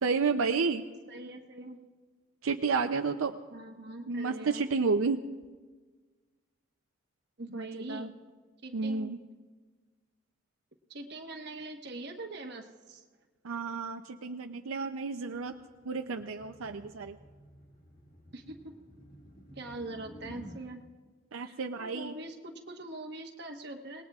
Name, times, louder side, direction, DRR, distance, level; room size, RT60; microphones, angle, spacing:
voice 1, 0.0-0.8 2.4-3.3 4.1-5.2 7.5-8.1 8.7-9.2 13.4-15.5 15.9-17.2 21.3-22.1, right 4 dB, 85° right, 6 dB, 0.6 m, -31 dB
voice 2, 1.1-1.8 3.5-4.6 7.4-8.1 8.6-9.1 10.9-13.0 18.3-18.7 19.5-20.8 21.4-24.0, right 2 dB, 50° right, 3 dB, 1.2 m, -42 dB
sound 1, 15.3-20.6, equal, 40° left, 2.2 m, -52 dB
26.0 x 19.5 x 2.4 m, 1.4 s
head